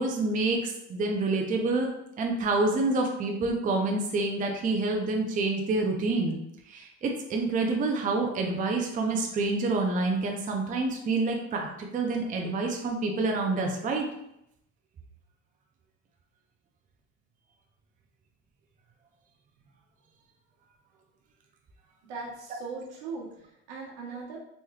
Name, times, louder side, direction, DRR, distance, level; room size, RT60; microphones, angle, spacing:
voice 1, 0.0-1.9 2.2-6.4 6.7-11.7 11.9-14.1, right 3 dB, 25° right, 2 dB, 0.5 m, -27 dB
voice 2, 22.1-24.4, right 4 dB, 80° right, -2 dB, 1.1 m, -39 dB
3.1 x 3.1 x 2.3 m, 0.80 s
supercardioid pair, 100°, 35 cm